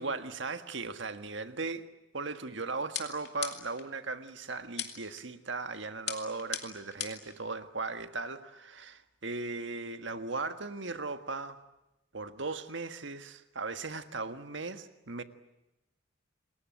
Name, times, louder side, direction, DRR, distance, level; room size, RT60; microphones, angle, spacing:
voice 1, 0.0-1.9 2.1-11.6 12.1-15.2, right 3 dB, 75° right, 1.6 m, -37 dB
sound 1, 2.9-3.9 4.8-5.2 6.1-7.3, left 10 dB, 55° left, 2.9 m, -38 dB
28.5 x 21.5 x 8.9 m
head